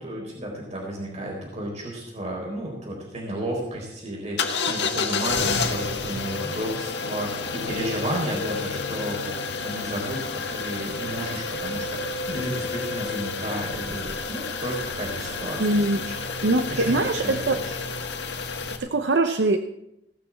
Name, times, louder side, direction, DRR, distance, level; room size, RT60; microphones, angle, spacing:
voice 1, 0.0-9.3 9.6-16.1 16.4-17.8, right 1 dB, 40° right, -2 dB, 4.2 m, -33 dB
sound 1, 4.4-18.8, left 4 dB, 80° left, 1.7 m, -30 dB
voice 2, 15.6-16.1 16.4-17.6 18.8-19.6, right 2 dB, 85° right, 7 dB, 0.7 m, -22 dB
18.0 x 6.3 x 7.2 m, 0.85 s
head